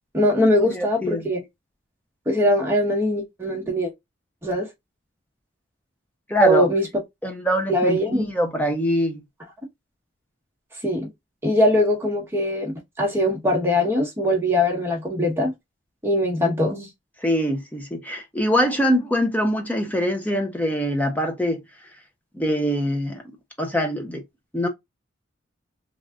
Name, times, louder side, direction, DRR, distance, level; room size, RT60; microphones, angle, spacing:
voice 1, 0.1-1.4 2.3-3.9 4.4-4.7 6.4-6.9 7.7-8.3 10.8-11.1 11.4-15.5 16.0-16.9, left 1 dB, 10° right, 1.1 m, -21 dB
voice 2, 0.7-1.3 6.3-6.7 7.2-9.2 17.2-21.6 22.3-23.2 23.6-24.2 24.5-24.7, equal, 10° left, 0.6 m, -23 dB
3.3 x 2.4 x 2.4 m
head